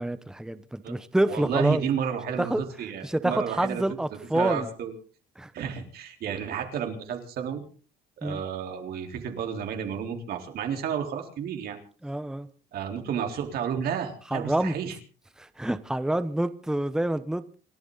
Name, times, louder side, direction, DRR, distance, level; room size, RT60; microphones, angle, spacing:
voice 1, 0.0-1.8 2.4-2.6 3.0-4.7 5.4-5.5 8.2-8.4 12.0-12.5 14.3-14.7 15.4-17.6, right 1 dB, 5° right, 0.9 m, -27 dB
voice 2, 1.2-3.8 4.3-4.9 5.5-7.6 8.2-11.8 12.7-15.0, right 8 dB, 65° right, 3.8 m, -31 dB
28.5 x 12.5 x 4.0 m
cardioid pair, 110°, 17 cm